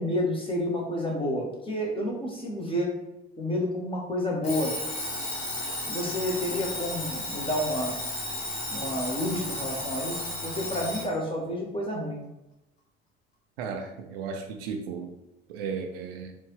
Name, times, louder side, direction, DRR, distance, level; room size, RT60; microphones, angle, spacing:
voice 1, 0.0-2.9 3.4-4.7 5.9-8.0 8.7-12.2, left 1 dB, 15° left, -1 dB, 1.3 m, -30 dB
Alarm, 4.4-11.1, left 2 dB, 75° left, 1.3 m, -34 dB
voice 2, 13.6-15.1 15.5-16.3, right 5 dB, 65° right, 5 dB, 0.5 m, -35 dB
4.6 x 2.5 x 3.1 m, 0.92 s
figure-of-eight pair, 60°, 31 cm